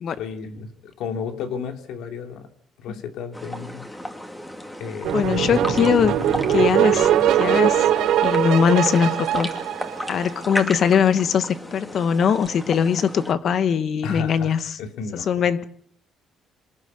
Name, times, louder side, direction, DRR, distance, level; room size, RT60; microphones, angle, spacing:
voice 1, 0.2-2.5 2.8-3.9 4.8-5.3 14.0-15.3, left 6 dB, 85° left, 3.1 m, -33 dB
sound 1, 3.3-13.3, left 1 dB, 10° left, 2.7 m, -35 dB
sound 2, 5.0-10.5, right 10 dB, 80° right, 5.1 m, -21 dB
voice 2, 5.1-6.2 6.5-7.9 8.2-9.5 10.1-14.8 15.3-15.7, left 7 dB, 50° left, 1.4 m, -21 dB
27.0 x 11.5 x 9.5 m
cardioid pair, 135°, 0 cm